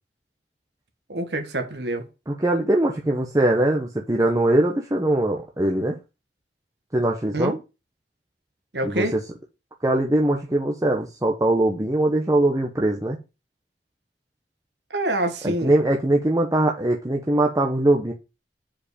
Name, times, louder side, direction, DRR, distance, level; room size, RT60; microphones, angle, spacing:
voice 1, 1.1-2.1 7.3-7.6 8.7-9.2 14.9-15.7, right 1 dB, 70° right, 1.7 m, -26 dB
voice 2, 2.3-6.0 6.9-7.5 8.8-9.0 9.8-13.2 15.4-18.1, right 1 dB, 20° right, 0.9 m, -21 dB
7.5 x 5.1 x 5.0 m
head